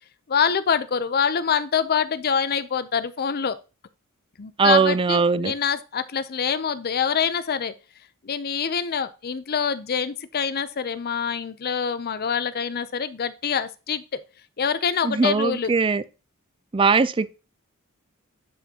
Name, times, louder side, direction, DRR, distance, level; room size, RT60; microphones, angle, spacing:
voice 1, 0.3-3.6 4.4-7.7 8.2-14.0 14.6-15.7, left 7 dB, 45° left, 0.6 m, -25 dB
voice 2, 4.6-5.5 15.0-16.0 16.7-17.3, right 4 dB, 25° right, 0.4 m, -20 dB
10.5 x 5.9 x 2.9 m
head